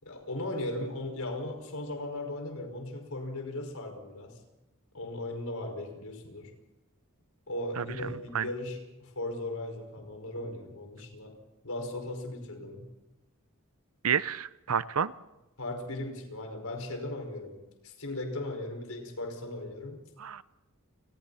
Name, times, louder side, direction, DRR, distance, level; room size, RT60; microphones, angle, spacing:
voice 1, 0.0-4.4 4.9-6.5 7.5-11.4 11.6-12.9 15.6-20.1, left 1 dB, 80° left, 4 dB, 5.3 m, -37 dB
voice 2, 14.0-15.1 20.2-20.4, right 7 dB, 80° right, 17 dB, 0.7 m, -29 dB
29.5 x 21.0 x 4.2 m, 1.0 s
head